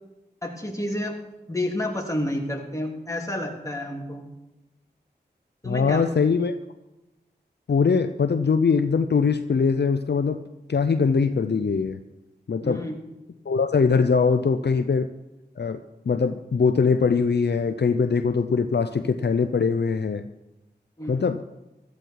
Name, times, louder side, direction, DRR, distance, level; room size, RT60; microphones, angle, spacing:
voice 1, 0.4-1.2 1.5-4.3 5.6-6.0 12.6-13.0 21.0-21.2, left 1 dB, 15° left, 0 dB, 3.3 m, -30 dB
voice 2, 5.6-6.6 7.7-10.4 10.7-12.0 12.5-12.8 13.5-15.1 15.6-20.2 21.1-21.4, left 5 dB, 65° left, 10 dB, 0.7 m, -22 dB
16.0 x 13.5 x 4.7 m, 0.98 s
cardioid pair, 40°, 18 cm